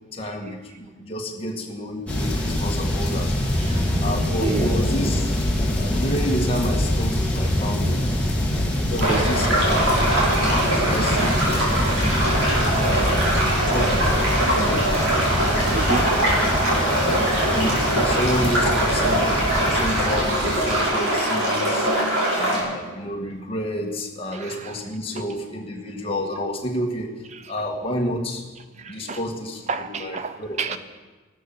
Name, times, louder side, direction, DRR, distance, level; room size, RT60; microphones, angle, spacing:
voice 1, 0.1-3.3 4.0-5.3 5.8-8.0 8.8-10.0 10.7-11.4 12.8-13.2 13.7-14.9 16.2-16.5 16.8-21.9 22.3-27.1 27.5-28.4 28.9-30.8, equal, 25° left, 0 dB, 1.9 m, -29 dB
sound 1, 2.1-20.8, left 1 dB, 5° left, 2.4 m, -24 dB
voice 2, 3.6-3.9 4.4-4.7 8.7-9.3 11.2-11.3 15.7-16.1 24.3-24.8 25.1-25.2 27.3-27.5 28.8-29.2 29.7-30.8, right 4 dB, 35° right, 11 dB, 0.4 m, -30 dB
sound 2, 9.0-22.6, right 1 dB, 80° right, 5.7 m, -22 dB
15.5 x 13.0 x 5.9 m, 1.2 s
head